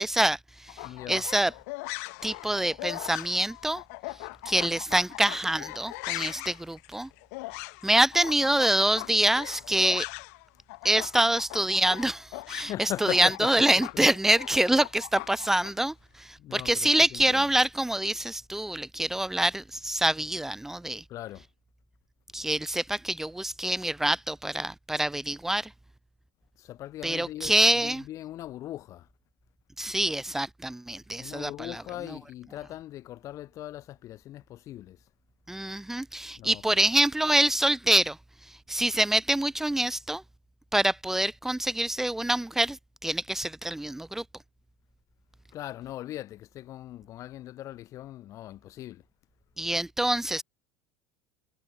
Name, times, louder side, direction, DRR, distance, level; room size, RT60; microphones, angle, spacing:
voice 1, 0.0-1.5 2.2-3.8 4.4-7.1 7.8-10.1 10.8-21.0 22.3-25.7 27.0-28.0 29.8-31.8 35.5-38.2 38.4-40.2 40.7-44.2 49.6-50.4, right 1 dB, 5° right, 1.2 m, -26 dB
sound 1, 0.7-10.4 10.7-15.7, left 27 dB, 80° left, 1.2 m, -39 dB
voice 2, 0.8-1.3 12.5-13.7 13.9-14.0 16.4-17.6 21.1-21.5 26.6-29.1 31.2-35.1 36.4-36.8 45.5-49.0, left 14 dB, 40° left, 6.1 m, -39 dB
cardioid pair, 155°, 8 cm